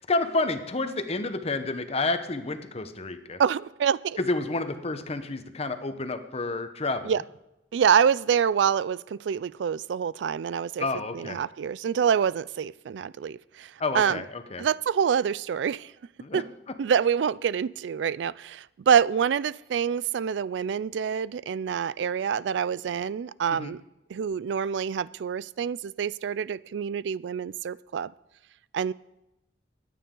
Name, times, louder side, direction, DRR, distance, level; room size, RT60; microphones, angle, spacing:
voice 1, 0.0-3.4 4.2-7.1 10.8-11.4 13.8-14.7 16.2-16.4 23.5-23.7, left 3 dB, 35° left, 9 dB, 1.0 m, -30 dB
voice 2, 3.4-4.2 7.1-7.2 7.7-10.9 11.1-14.2 14.6-15.9 16.3-16.4 16.8-23.8 24.1-28.1 28.7-28.9, right 7 dB, 80° right, 20 dB, 0.3 m, -26 dB
21.5 x 9.3 x 3.8 m, 0.91 s
head